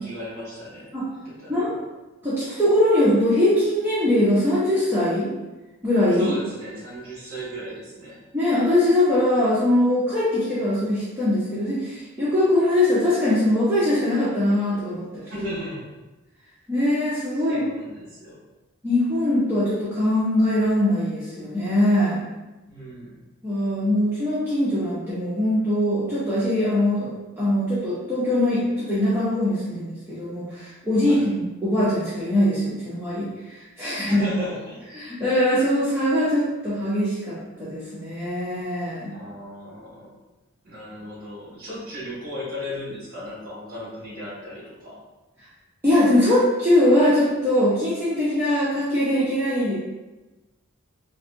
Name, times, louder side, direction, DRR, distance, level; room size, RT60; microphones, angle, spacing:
voice 1, 0.0-0.9 1.2-1.8 6.2-8.2 15.2-15.9 17.5-18.4 22.7-23.1 31.0-31.3 34.0-34.8 39.1-40.1 40.6-45.0, equal, 40° right, -7 dB, 1.4 m, -35 dB
voice 2, 2.2-5.3 5.8-6.3 8.3-15.2 16.7-17.6 18.8-22.2 23.4-34.2 34.9-39.1 45.8-49.7, left 1 dB, 10° right, -11 dB, 0.6 m, -22 dB
4.0 x 2.6 x 2.5 m, 1.1 s
head